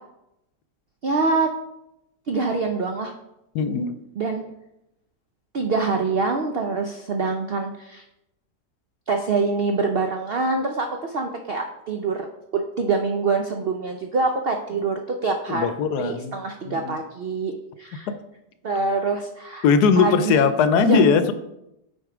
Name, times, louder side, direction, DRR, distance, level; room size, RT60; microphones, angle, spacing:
voice 1, 1.0-1.5 2.3-3.1 4.2-4.4 5.5-8.0 9.1-12.3 12.5-15.7 16.0-18.1 18.6-19.6 20.0-20.4 20.9-21.1, right 4 dB, 70° right, 4 dB, 0.5 m, -25 dB
voice 2, 3.5-3.9 15.5-16.4 16.7-16.9 18.1-18.2 19.6-21.3, left 6 dB, 75° left, 11 dB, 1.2 m, -19 dB
7.9 x 4.7 x 4.9 m, 0.86 s
omnidirectional pair, 1.7 m